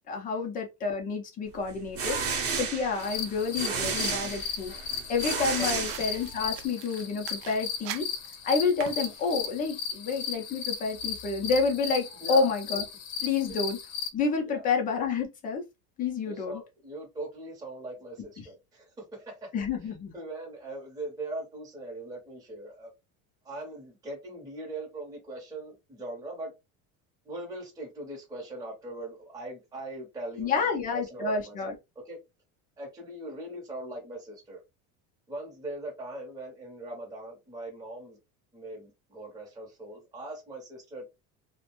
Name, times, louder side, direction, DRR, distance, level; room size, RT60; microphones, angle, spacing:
voice 1, 0.1-2.2 2.6-4.7 5.1-8.1 8.4-12.8 13.2-13.8 14.1-15.6 16.0-16.6 19.5-20.1 30.4-31.7, left 4 dB, 25° left, 0.5 m, -29 dB
sound 1, 1.7-6.6, right 5 dB, 40° right, 0.8 m, -32 dB
sound 2, 3.0-14.1, left 7 dB, 60° left, 0.7 m, -36 dB
sound 3, 5.5-9.6, right 10 dB, 70° right, 0.5 m, -43 dB
voice 2, 12.2-12.5 13.5-13.6 14.4-14.7 16.2-22.9 23.4-26.5 27.2-30.5 30.9-31.7 32.1-32.2 32.8-34.6 35.3-38.2 38.5-41.1, right 2 dB, 10° right, 0.8 m, -40 dB
2.5 x 2.1 x 2.9 m
cardioid pair, 170°, 35 cm